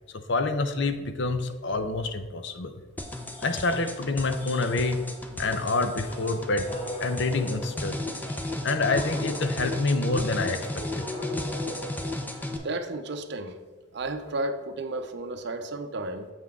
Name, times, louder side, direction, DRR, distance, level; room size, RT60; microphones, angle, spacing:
voice 1, 0.1-2.8 3.4-5.0 5.4-6.7 7.0-8.0 8.6-11.0, left 3 dB, 60° left, 8 dB, 0.6 m, -27 dB
sound 1, 3.0-12.6, left 1 dB, 10° left, 0.5 m, -34 dB
sound 2, 6.0-12.8, left 1 dB, 30° left, 0.9 m, -40 dB
voice 2, 12.6-13.6 13.9-16.3, right 2 dB, 60° right, 8 dB, 0.6 m, -33 dB
7.8 x 5.8 x 3.6 m, 1.3 s
head